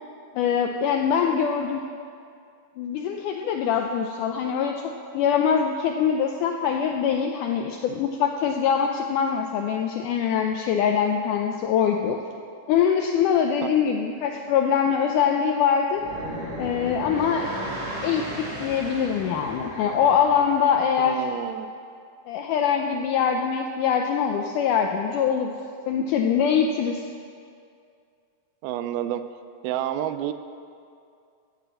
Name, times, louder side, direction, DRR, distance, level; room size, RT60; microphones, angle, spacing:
voice 1, 0.4-1.8 2.8-12.2 12.7-16.0 16.6-17.5 18.0-21.2 22.3-25.6 25.9-27.0, left 7 dB, 85° left, 3 dB, 1.8 m, -23 dB
sound 1, 15.9-21.0, right 1 dB, 40° right, 3.6 m, -35 dB
voice 2, 21.1-21.7 28.6-29.2 29.6-30.3, right 11 dB, 85° right, 10 dB, 2.5 m, -29 dB
15.0 x 6.9 x 7.4 m, 2.4 s
omnidirectional pair, 4.3 m